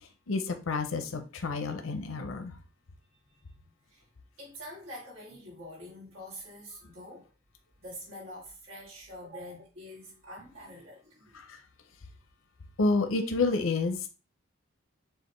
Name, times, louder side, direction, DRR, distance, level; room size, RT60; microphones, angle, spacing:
voice 1, 0.0-2.6 11.3-11.6 12.8-14.1, left 3 dB, 80° left, 0.6 m, -29 dB
voice 2, 4.4-7.3 7.8-11.4, equal, 80° right, 1.9 m, -45 dB
6.5 x 2.5 x 3.1 m
head